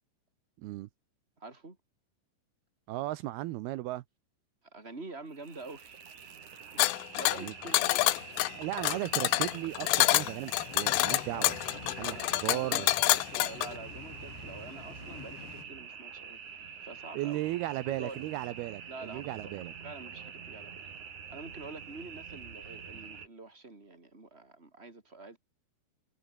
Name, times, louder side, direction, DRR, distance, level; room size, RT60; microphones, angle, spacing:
voice 1, 0.6-0.9 2.9-4.0 7.3-7.5 8.5-11.7 12.0-12.9 17.1-19.7, right 16 dB, 85° right, 2.2 m, -36 dB
voice 2, 1.4-1.8 4.7-6.0 6.7-8.2 11.7-17.4 17.7-18.3 18.9-20.8 21.3-25.4, right 3 dB, 15° right, 4.3 m, -47 dB
sound 1, 5.3-23.3, right 6 dB, 45° right, 4.1 m, -46 dB
sound 2, 6.8-13.7, left 19 dB, 85° left, 3.4 m, -27 dB
sound 3, 8.1-15.7, left 11 dB, 70° left, 4.0 m, -51 dB
omnidirectional pair, 5.6 m